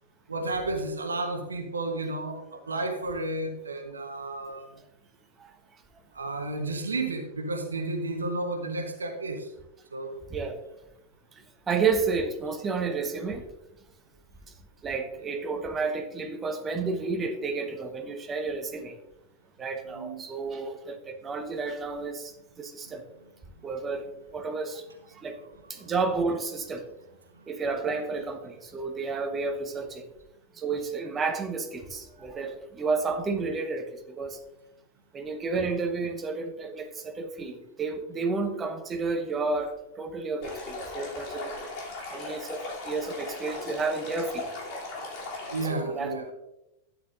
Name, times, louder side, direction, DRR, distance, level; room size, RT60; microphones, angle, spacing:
voice 1, 0.3-4.7 6.1-9.5 9.9-10.2 19.9-20.2 25.8-25.9 27.3-27.4 45.5-46.2, right 2 dB, 75° right, 5 dB, 1.2 m, -32 dB
voice 2, 11.7-13.5 14.8-19.0 19.6-23.0 23.6-25.4 25.7-26.9 27.5-30.1 30.5-34.4 35.1-39.7 40.0-41.6 42.1-44.5 45.7-46.3, right 4 dB, 20° right, 6 dB, 1.2 m, -31 dB
Stream, 40.4-45.7, left 2 dB, 45° left, 3.0 m, -38 dB
12.0 x 9.2 x 2.6 m, 0.91 s
figure-of-eight pair, 90°, 0 cm